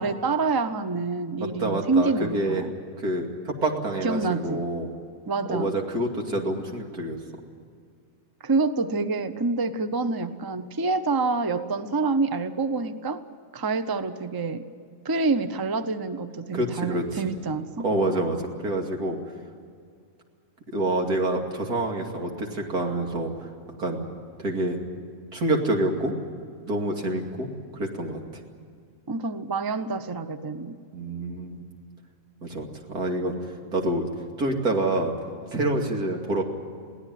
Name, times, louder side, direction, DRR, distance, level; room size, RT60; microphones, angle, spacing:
voice 1, 0.0-2.7 4.0-4.6 5.3-5.8 8.4-13.2 13.5-14.6 15.0-17.8 29.1-30.8, right 3 dB, 20° right, 11 dB, 0.6 m, -27 dB
voice 2, 1.4-2.7 3.0-4.9 5.5-7.2 16.5-17.2 17.8-19.2 20.7-23.5 23.8-24.0 24.4-24.8 25.3-26.1 26.7-28.2 30.9-31.6 32.4-33.4 33.7-34.0 34.4-35.1 35.5-36.4, right 1 dB, 90° right, 1 dB, 3.1 m, -27 dB
22.5 x 17.0 x 9.3 m, 2.2 s
omnidirectional pair, 1.6 m